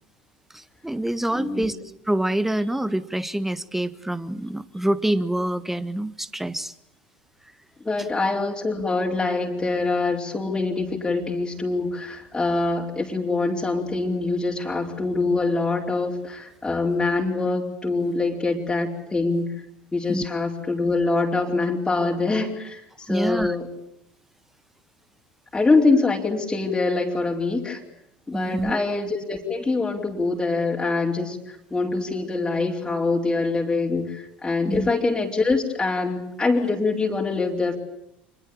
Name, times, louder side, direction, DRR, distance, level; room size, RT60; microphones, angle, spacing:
voice 1, 0.5-1.8 2.1-6.7 20.1-20.2 23.1-23.5 28.3-28.8 34.7-34.9, right 1 dB, 5° right, 15 dB, 1.5 m, -26 dB
voice 2, 1.3-1.7 7.8-19.5 19.9-23.7 25.5-27.8 28.3-37.8, left 3 dB, 15° left, -2 dB, 4.6 m, -24 dB
28.0 x 22.0 x 8.8 m, 0.76 s
figure-of-eight pair, 70°, 6 cm